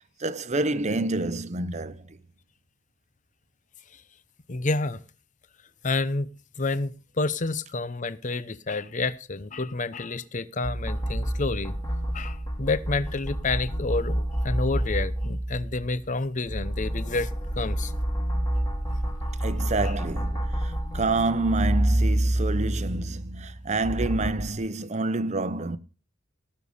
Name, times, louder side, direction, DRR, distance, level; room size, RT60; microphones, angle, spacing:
voice 1, 0.2-2.0 19.4-25.8, right 2 dB, 35° right, 0.8 m, -28 dB
voice 2, 4.5-5.0 5.8-6.3 6.6-11.7 12.1-17.3 17.6-17.9 19.8-19.9, left 3 dB, 40° left, 0.7 m, -29 dB
sound 1, 10.6-16.1 16.5-24.5, right 1 dB, 20° left, 2.4 m, -28 dB
17.5 x 6.7 x 5.5 m
head